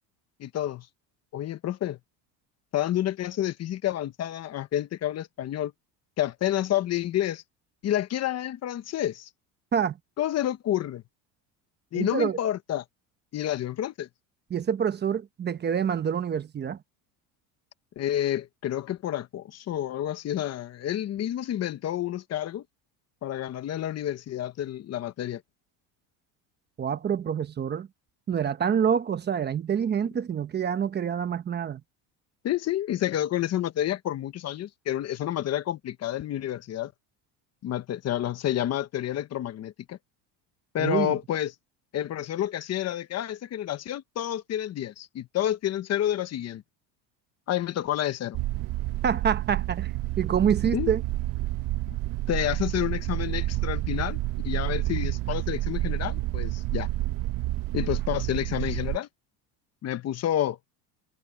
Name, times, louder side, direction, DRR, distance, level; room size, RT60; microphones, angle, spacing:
voice 1, 0.4-0.9 1.3-2.0 2.7-5.7 6.2-7.4 7.8-9.3 10.2-11.0 11.9-12.8 13.3-14.1 18.0-22.6 23.2-25.4 32.4-36.9 37.6-40.0 40.7-41.5 41.9-46.6 47.5-48.4 50.7-50.9 52.3-56.9 57.7-59.1 59.8-60.6, left 12 dB, 40° left, 1.1 m, -29 dB
voice 2, 11.9-12.4 14.5-16.8 26.8-27.9 28.3-31.8 40.8-41.2 49.0-49.9 50.2-51.0, right 7 dB, 25° right, 0.9 m, -26 dB
sound 1, 48.3-59.0, right 16 dB, 55° right, 1.0 m, -29 dB
cardioid pair, 135°, 40 cm